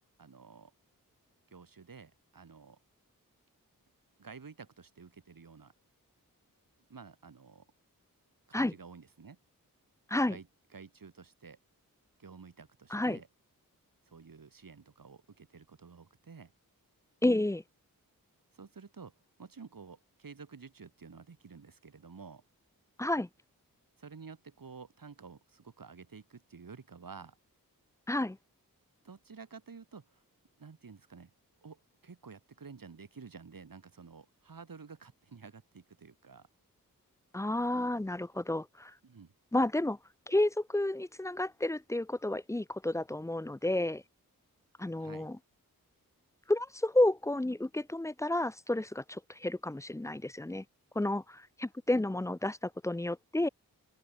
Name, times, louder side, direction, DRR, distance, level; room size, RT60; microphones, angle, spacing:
voice 1, 0.2-0.7 1.5-2.8 4.2-5.7 6.9-7.6 8.5-9.4 10.3-10.5 10.7-11.6 12.2-13.3 14.1-16.5 18.5-19.1 19.4-22.4 24.0-27.4 29.0-30.2 30.6-31.3 31.6-36.5 39.0-39.3 45.0-45.3, right 5 dB, 70° right, 6.3 m, -51 dB
voice 2, 17.2-17.6 23.0-23.3 28.1-28.4 37.3-38.9 39.5-40.0 40.3-44.0 44.8-45.4 46.5-50.6 51.0-53.5, left 1 dB, 10° left, 0.5 m, -31 dB
open air
cardioid pair, 50°, 35 cm